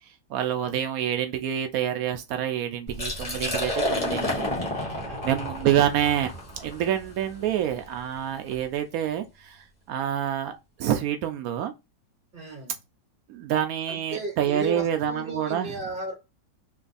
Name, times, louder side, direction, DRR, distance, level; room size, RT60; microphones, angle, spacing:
voice 1, 0.3-4.5 5.2-11.7 13.3-15.7, right 10 dB, 90° right, 0.8 m, -27 dB
Liquid, 2.9-8.6, left 1 dB, 20° left, 1.2 m, -31 dB
voice 2, 5.0-5.4 12.3-12.8 13.9-16.1, right 2 dB, 30° right, 1.3 m, -35 dB
3.4 x 3.2 x 3.9 m
omnidirectional pair, 2.1 m